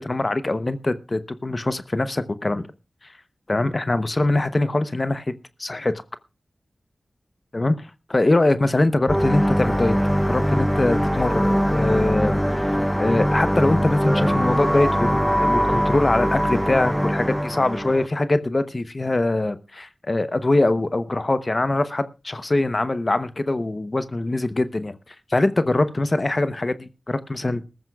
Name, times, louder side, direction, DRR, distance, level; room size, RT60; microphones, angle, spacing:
voice 1, 0.0-2.7 3.0-3.2 3.5-5.3 5.6-5.9 7.5-7.7 8.1-10.0 10.3-12.7 13.0-27.7, left 2 dB, 40° left, 12 dB, 0.8 m, -23 dB
sound 1, 9.1-18.1, equal, ahead, 0.6 m, -22 dB
20.5 x 14.0 x 2.3 m, 0.30 s
cardioid pair, 45°, 0 cm